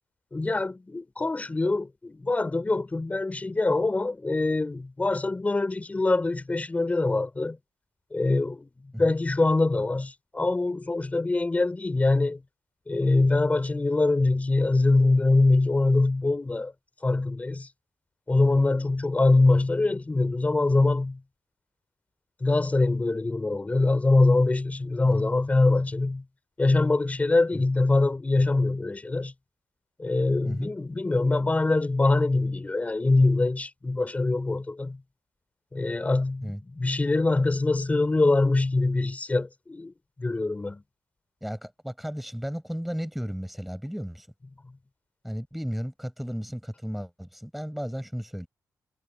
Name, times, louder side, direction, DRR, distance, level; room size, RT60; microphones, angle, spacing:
voice 1, 0.3-7.6 8.1-8.7 9.0-12.4 12.9-16.7 17.0-17.7 18.3-21.2 22.4-26.2 26.6-29.3 30.0-35.0 35.7-39.9 40.2-40.8, left 2 dB, 20° left, 5.1 m, -24 dB
voice 2, 41.4-44.3 45.2-48.5, equal, ahead, 6.4 m, -34 dB
cardioid pair, 105°, 7 cm